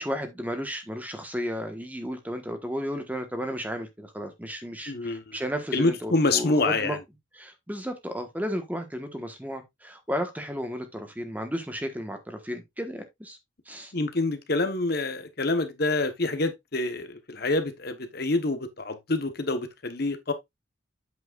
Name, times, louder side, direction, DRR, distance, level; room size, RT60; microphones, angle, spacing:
voice 1, 0.0-7.0 7.3-13.4 13.7-13.9, equal, 10° right, 1.3 m, -33 dB
voice 2, 4.9-5.4 5.7-7.0 13.9-20.3, left 2 dB, 50° left, 1.1 m, -27 dB
8.4 x 7.5 x 2.5 m
head